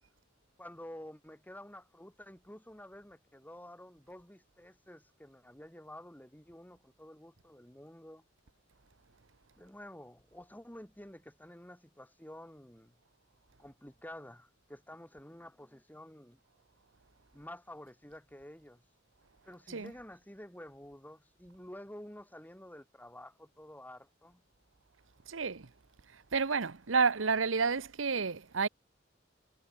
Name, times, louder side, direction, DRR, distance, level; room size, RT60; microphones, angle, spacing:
voice 1, 0.6-8.2 9.5-12.9 13.6-16.4 17.3-18.8 19.4-24.4, left 1 dB, 10° left, 6.5 m, -50 dB
voice 2, 25.3-25.7 26.1-28.7, right 5 dB, 90° right, 1.0 m, -30 dB
head